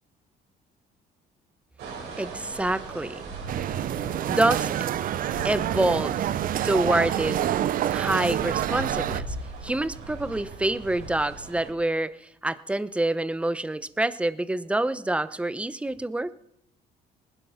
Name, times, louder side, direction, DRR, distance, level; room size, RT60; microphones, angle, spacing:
sound 1, 1.8-11.7, right 3 dB, 80° right, 6.0 m, -39 dB
voice 1, 2.2-3.2 4.3-4.7 5.4-6.3 6.6-7.4 7.9-9.4 9.6-16.3, right 2 dB, 5° right, 15 dB, 0.7 m, -26 dB
sound 2, 3.5-9.2, right 11 dB, 55° right, 0.6 m, -27 dB
19.5 x 11.5 x 5.7 m, 0.81 s
cardioid pair, 110°, 17 cm